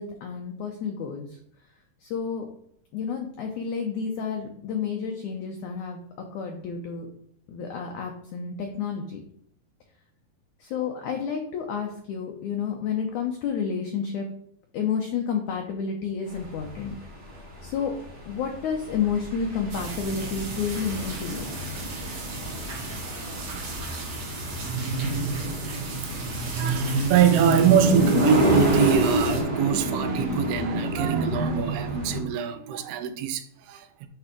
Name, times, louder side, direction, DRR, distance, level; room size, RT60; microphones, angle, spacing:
voice 1, 0.0-1.4 2.0-2.5 2.9-7.1 7.5-9.2 10.6-14.3 14.7-17.0 17.6-18.0 18.3-21.5, left 6 dB, 80° left, 1.7 m, -30 dB
sound 1, 16.3-32.2, right 1 dB, 30° right, 1.5 m, -27 dB
sound 2, 19.7-29.4, right 2 dB, 45° right, 1.7 m, -36 dB
voice 2, 26.4-34.1, right 8 dB, 90° right, 2.7 m, -24 dB
8.7 x 3.4 x 5.1 m
omnidirectional pair, 4.5 m